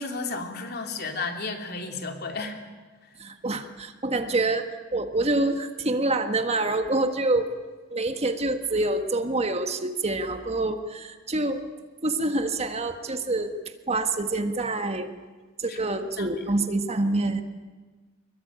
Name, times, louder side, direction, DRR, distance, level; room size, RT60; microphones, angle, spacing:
voice 1, 0.0-2.6 15.7-16.3, left 3 dB, 55° left, 4 dB, 3.2 m, -33 dB
voice 2, 3.2-7.5 7.9-11.7 12.0-13.5 13.9-15.1 15.6-17.4, right 2 dB, 35° right, 7 dB, 1.6 m, -26 dB
25.5 x 23.0 x 8.9 m, 1.4 s
head